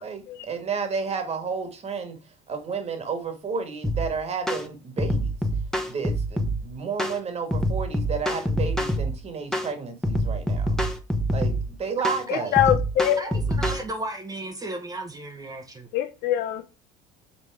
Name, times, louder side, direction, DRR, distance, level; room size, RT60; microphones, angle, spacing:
voice 1, 0.0-2.2 2.5-5.3 5.9-10.7 11.3-12.5, right 5 dB, 35° right, 1.7 m, -31 dB
sound 1, 3.8-4.1 4.5-4.6 5.0-6.6 7.0-7.2 7.5-9.1 9.5-9.7 10.0-11.6 12.0-12.2 12.6-13.8, equal, 5° left, 1.1 m, -25 dB
voice 2, 12.3-13.2 15.9-16.6, left 11 dB, 65° left, 0.7 m, -23 dB
voice 3, 13.2-15.9, right 2 dB, 20° right, 1.0 m, -35 dB
5.9 x 4.0 x 4.7 m
supercardioid pair, 100°, 18 cm